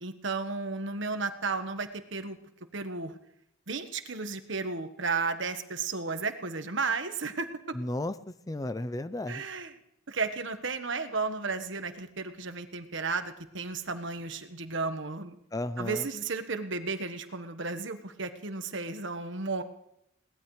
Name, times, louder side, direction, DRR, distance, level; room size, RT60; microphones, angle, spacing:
voice 1, 0.0-2.4 2.7-3.2 3.7-7.8 9.3-9.7 10.1-15.3 15.8-19.6, right 4 dB, 65° right, 9 dB, 1.3 m, -33 dB
voice 2, 7.7-8.1 8.5-9.4 15.5-16.0, left 1 dB, 20° left, 13 dB, 0.5 m, -33 dB
22.0 x 18.5 x 3.2 m, 0.81 s
head